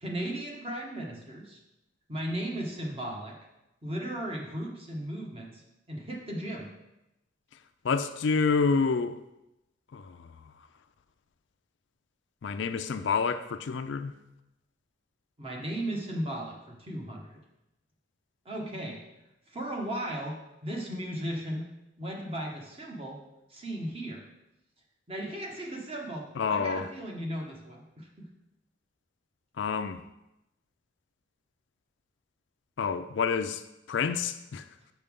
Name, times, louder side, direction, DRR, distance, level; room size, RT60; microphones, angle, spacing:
voice 1, 0.0-1.6 2.1-3.4 3.8-5.6 5.9-6.7 15.4-17.4 18.4-19.0 19.5-20.4 20.6-21.7 22.0-23.2 23.5-24.2 25.1-28.3, right 1 dB, 30° right, 1.2 m, -36 dB
voice 2, 7.8-9.2 9.9-10.3 12.4-14.1 26.4-26.9 29.6-30.0 32.8-33.6 33.9-34.6, left 5 dB, 65° left, 0.4 m, -28 dB
6.7 x 6.0 x 3.6 m
head